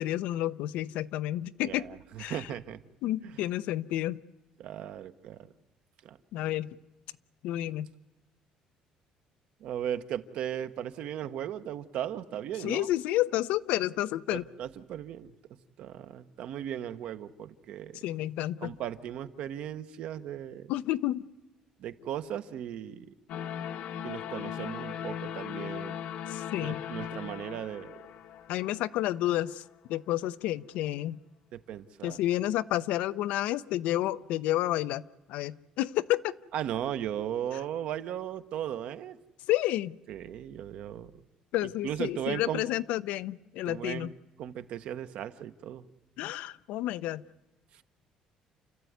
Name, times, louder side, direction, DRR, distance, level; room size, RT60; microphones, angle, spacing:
voice 1, 0.0-1.9 2.2-2.5 3.0-4.2 6.3-6.7 7.4-7.9 12.6-14.4 18.0-18.7 20.7-21.2 26.3-26.8 28.5-29.6 29.9-31.2 32.0-35.0 35.3-36.3 39.5-40.0 41.5-44.1 46.2-47.2, left 14 dB, 85° left, 14 dB, 0.7 m, -30 dB
voice 2, 1.6-2.8 3.2-3.3 4.6-5.5 6.0-6.2 9.6-12.9 14.3-15.3 15.8-18.0 18.6-20.7 21.8-23.1 24.0-26.0 26.6-27.9 31.5-32.2 36.5-39.2 40.1-41.1 41.8-42.6 43.7-44.1 44.4-45.8, right 10 dB, 60° right, 10 dB, 1.1 m, -37 dB
sound 1, 23.3-29.4, left 9 dB, 60° left, 1.0 m, -38 dB
29.5 x 14.0 x 9.5 m, 1.1 s
cardioid pair, 170°, 2 cm